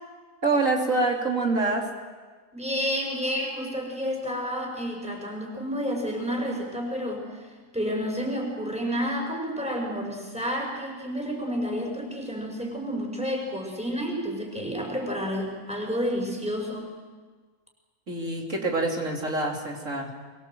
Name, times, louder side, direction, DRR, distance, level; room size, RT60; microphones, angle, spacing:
voice 1, 0.4-1.9 18.1-20.1, right 3 dB, 60° right, 1 dB, 3.6 m, -26 dB
voice 2, 2.5-7.5 7.7-16.9, equal, 5° right, 1 dB, 5.2 m, -30 dB
23.5 x 22.5 x 7.7 m, 1.5 s
omnidirectional pair, 1.6 m